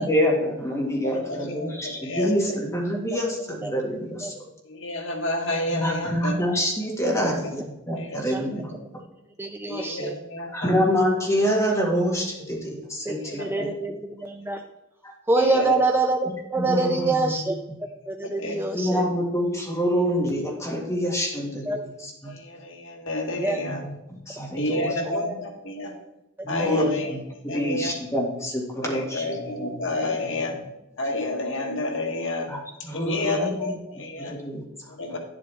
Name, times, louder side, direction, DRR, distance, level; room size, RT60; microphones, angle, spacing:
voice 1, 0.0-4.3 5.7-8.7 10.5-13.7 15.0-15.1 16.6-17.3 18.7-21.8 22.0-22.3 23.6-25.0 26.4-29.8 30.2-30.3 32.5-34.9, equal, 15° left, -2 dB, 1.9 m, -27 dB
voice 2, 1.0-2.3 4.6-6.4 7.2-7.3 8.0-8.2 9.7-10.7 13.2-13.7 15.4-15.7 18.4-18.6 22.3-23.8 24.6-25.9 26.5-27.1 27.5-27.9 28.8-30.5 31.0-32.5 32.9-34.4 35.0-35.2, left 2 dB, 70° left, 2 dB, 1.4 m, -30 dB
voice 3, 9.4-10.2 13.1-14.6 15.3-17.6 18.1-19.1 21.7-21.8 23.4-23.6 24.7-25.3 29.3-29.4 33.4-33.6, right 3 dB, 10° right, 4 dB, 0.4 m, -26 dB
10.5 x 7.6 x 3.5 m, 0.92 s
head